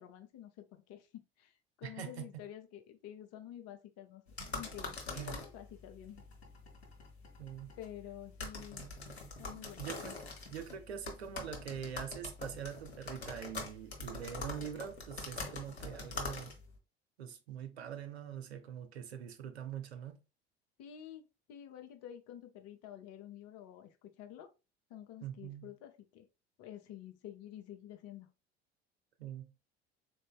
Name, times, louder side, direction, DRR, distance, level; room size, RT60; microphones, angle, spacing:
voice 1, 0.0-6.2 7.8-8.9 9.4-9.9 20.8-24.5 24.9-26.3 26.6-28.3, left 11 dB, 50° left, 0.9 m, -50 dB
voice 2, 1.8-2.4 5.1-5.4 7.4-7.7 9.5-10.2 10.5-16.5 17.2-20.2 25.2-25.7 29.2-29.5, right 9 dB, 80° right, 0.7 m, -44 dB
sound 1, 4.3-16.8, left 3 dB, 85° left, 0.9 m, -45 dB
3.8 x 2.6 x 3.6 m
figure-of-eight pair, 65°, 31 cm